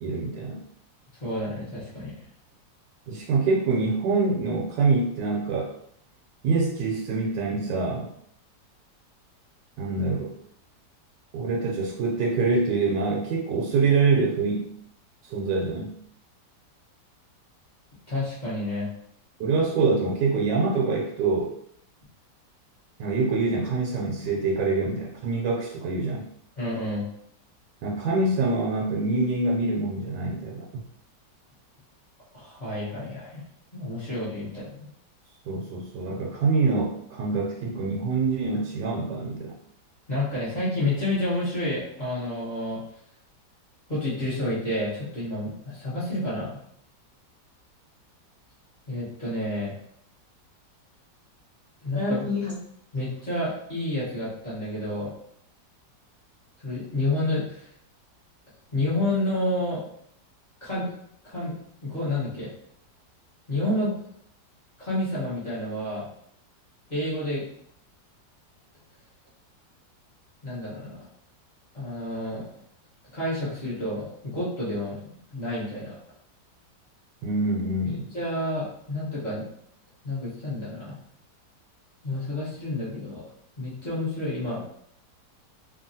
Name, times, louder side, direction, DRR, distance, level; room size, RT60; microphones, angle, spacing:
voice 1, 0.0-0.6 3.1-5.7 6.4-8.1 9.8-10.3 11.3-14.7 15.3-15.9 19.4-21.5 23.0-26.2 27.8-30.8 35.5-39.5 77.2-78.1, right 3 dB, 85° right, -2 dB, 1.2 m, -25 dB
voice 2, 1.2-2.2 18.1-18.9 26.6-27.0 32.3-33.4 33.7-34.9 40.1-42.8 43.9-46.6 48.9-49.8 51.8-52.6 52.9-55.1 56.6-57.7 58.7-59.8 60.6-60.9 61.2-61.5 61.8-62.5 63.5-64.1 64.8-66.1 66.9-67.4 70.4-71.0 71.7-72.4 73.1-76.0 78.1-79.5 80.0-81.0 82.0-83.2 83.6-84.8, left 1 dB, 30° left, -10 dB, 0.9 m, -29 dB
2.9 x 2.4 x 2.6 m, 0.69 s
omnidirectional pair, 1.9 m